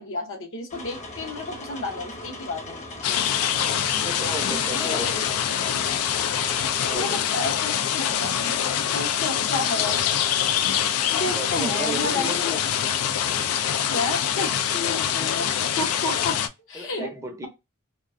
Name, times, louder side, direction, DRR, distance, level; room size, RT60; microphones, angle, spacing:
voice 1, 0.0-2.8 4.5-5.2 6.9-10.0 11.1-12.6 13.9-16.4 16.7-17.1, left 3 dB, 65° left, 0.7 m, -31 dB
sound 1, 0.7-7.0, left 2 dB, 35° left, 0.7 m, -39 dB
sound 2, 3.0-16.5, left 9 dB, 90° left, 0.4 m, -25 dB
voice 2, 3.9-5.4 6.8-7.4 11.4-12.6 16.7-17.5, right 1 dB, 15° right, 0.5 m, -34 dB
2.3 x 2.2 x 2.4 m
head